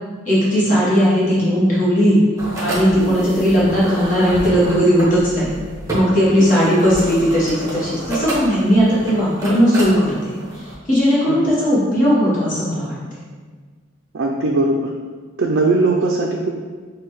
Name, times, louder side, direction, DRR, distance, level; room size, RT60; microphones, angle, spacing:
voice 1, 0.2-2.2 2.6-5.5 5.9-10.3 10.9-13.0, equal, 40° left, -8 dB, 1.0 m, -17 dB
sound 1, 2.4-10.8, right 1 dB, 15° right, 0.8 m, -30 dB
voice 2, 14.1-14.9 15.4-16.5, right 2 dB, 55° right, 0 dB, 0.4 m, -19 dB
6.6 x 2.2 x 3.1 m, 1.5 s
head